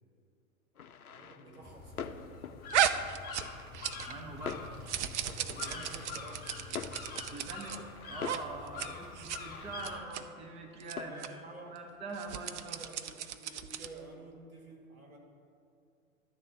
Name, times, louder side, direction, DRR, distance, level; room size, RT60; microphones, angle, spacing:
sound 1, 0.8-14.2, left 7 dB, 85° left, 0.6 m, -47 dB
voice 1, 1.1-2.4 5.2-6.8 11.0-11.8 12.6-15.2, right 2 dB, 80° right, -1 dB, 2.2 m, -51 dB
sound 2, 1.6-10.0, left 4 dB, 20° left, 1.3 m, -46 dB
sound 3, 2.7-4.2 4.5-7.8 8.2-8.4 8.7-8.9 9.2-9.4 9.8-10.2 10.8-10.9 11.2-11.3 12.1-14.0, right 10 dB, 55° right, 0.6 m, -35 dB
voice 2, 4.1-4.7 7.3-12.8, right 3 dB, 15° right, 3 dB, 0.7 m, -44 dB
11.5 x 3.9 x 7.5 m, 2.4 s
figure-of-eight pair, 100°, 42 cm